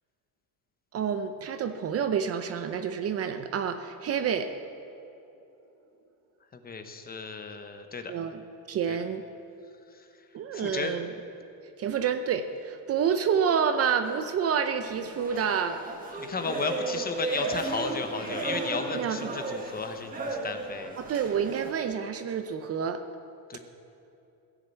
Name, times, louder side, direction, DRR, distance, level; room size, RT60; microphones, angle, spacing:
voice 1, 0.9-4.5 8.1-8.4 8.7-9.2 10.3-11.1 11.8-15.8 18.9-19.4 21.0-23.0, right 7 dB, 35° right, 9 dB, 0.6 m, -28 dB
voice 2, 6.5-8.2 8.9-9.0 10.5-10.9 16.1-21.0 23.5-23.6, left 4 dB, 20° left, 6 dB, 0.9 m, -34 dB
sound 1, 14.8-21.7, right 3 dB, 20° right, 1.6 m, -35 dB
16.0 x 6.7 x 7.9 m, 2.8 s
cardioid pair, 130°, 42 cm